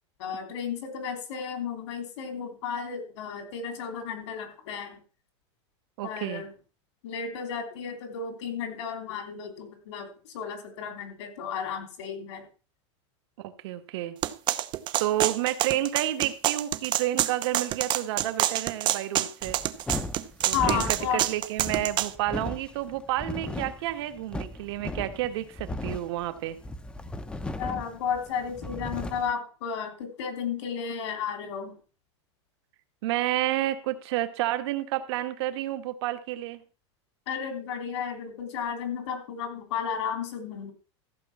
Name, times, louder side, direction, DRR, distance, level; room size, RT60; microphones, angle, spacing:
voice 1, 0.2-5.0 6.0-6.5 7.0-12.4 20.5-21.2 27.6-31.8 37.3-40.7, left 7 dB, 75° left, 6 dB, 3.5 m, -33 dB
voice 2, 6.0-6.4 13.4-14.2 15.0-19.6 20.4-26.6 33.0-36.6, right 14 dB, 65° right, 9 dB, 1.7 m, -30 dB
sound 1, 14.2-22.1, right 13 dB, 30° right, 0.7 m, -27 dB
sound 2, 19.4-29.3, left 1 dB, 5° left, 0.8 m, -37 dB
14.5 x 5.4 x 7.2 m, 0.38 s
supercardioid pair, 150°, 15 cm